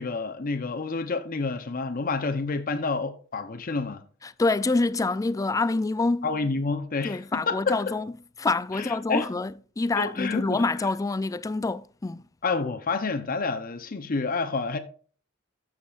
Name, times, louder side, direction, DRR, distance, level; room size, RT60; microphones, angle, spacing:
voice 1, 0.0-4.0 6.2-7.8 8.7-9.3 10.0-10.9 12.4-14.8, left 4 dB, 45° left, 0.8 m, -29 dB
voice 2, 4.2-6.3 7.0-8.1 8.4-12.2, left 3 dB, 15° left, 0.3 m, -26 dB
13.0 x 7.4 x 2.5 m
head